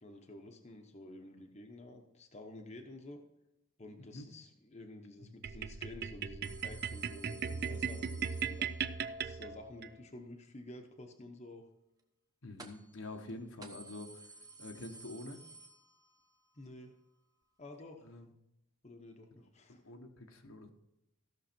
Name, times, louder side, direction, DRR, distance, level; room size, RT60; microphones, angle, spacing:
voice 1, 0.0-3.2 3.8-8.7 9.2-11.7 16.5-16.9 17.6-18.1 18.8-19.8, left 2 dB, 30° left, 3 dB, 1.0 m, -51 dB
voice 2, 4.0-4.3 5.2-5.3 12.4-14.3 14.6-15.4 18.0-18.3 19.8-20.7, left 2 dB, 75° left, 4 dB, 1.3 m, -47 dB
sound 1, 5.4-9.9, right 7 dB, 50° right, 0.5 m, -38 dB
sound 2, 6.4-9.1 12.6-13.0 13.3-13.4 13.6-16.3 16.7-16.8 17.8-17.9, right 3 dB, 15° right, 1.0 m, -54 dB
15.5 x 6.4 x 4.4 m, 0.89 s
head